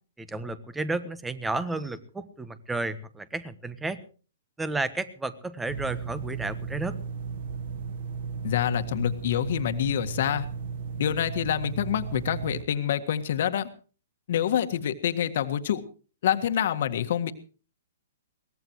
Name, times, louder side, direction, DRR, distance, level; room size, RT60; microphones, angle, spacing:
voice 1, 0.2-4.0 4.6-7.0, right 2 dB, 10° right, 14 dB, 1.3 m, -32 dB
sound 1, 5.7-12.6, right 5 dB, 60° right, 1.3 m, -35 dB
voice 2, 8.4-10.5 11.0-13.7 14.3-15.8 16.2-17.3, left 10 dB, 60° left, 8 dB, 1.7 m, -26 dB
22.5 x 19.0 x 3.1 m, 0.38 s
hypercardioid pair, 125°, 0 cm